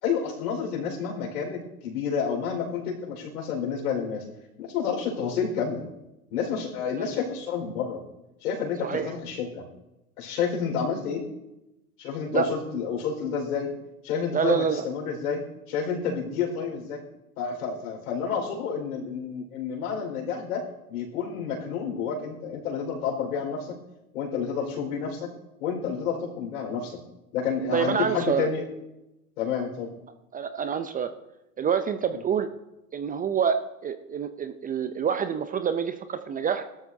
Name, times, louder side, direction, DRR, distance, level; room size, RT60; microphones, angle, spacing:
voice 1, 0.0-4.2 4.6-5.8 6.3-8.0 8.4-9.6 10.2-11.2 12.0-13.7 14.0-15.4 15.7-17.0 17.4-23.7 24.1-25.3 25.6-27.0 27.3-28.6 29.4-29.9 32.1-32.2, left 6 dB, 70° left, 2 dB, 4.7 m, -29 dB
voice 2, 14.3-14.8 27.7-28.5 30.3-31.1 31.6-32.5 32.9-36.6, right 7 dB, 20° right, 10 dB, 0.5 m, -27 dB
19.5 x 13.0 x 2.8 m, 0.94 s
hypercardioid pair, 100°, 47 cm